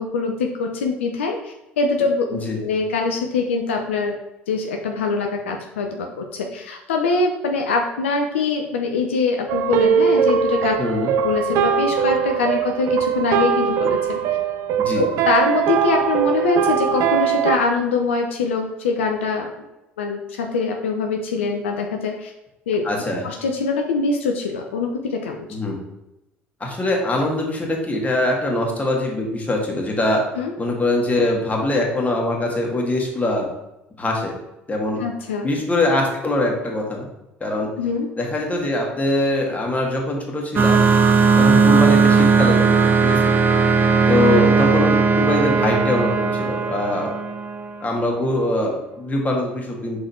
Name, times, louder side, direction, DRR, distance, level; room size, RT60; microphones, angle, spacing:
voice 1, 0.0-4.1 4.5-10.8 11.2-14.2 15.0-19.5 20.0-22.3 22.7-22.8 23.2-25.5 30.4-30.5 35.0-35.5 37.8-38.1, left 4 dB, 80° left, 3 dB, 0.6 m, -23 dB
voice 2, 2.3-2.6 10.8-11.1 14.8-15.1 22.8-23.2 25.5-25.8 26.6-30.2 30.6-33.5 34.0-34.4 34.7-35.0 35.4-37.1 37.4-37.7 38.2-40.9 41.4-43.3 44.1-47.1 47.8-50.0, left 1 dB, 20° left, 0 dB, 1.9 m, -22 dB
sound 1, 9.5-17.6, right 8 dB, 60° right, 0.5 m, -21 dB
sound 2, 40.6-47.9, right 5 dB, 35° right, 0.8 m, -17 dB
5.7 x 3.9 x 4.3 m, 0.94 s
hypercardioid pair, 60°, 6 cm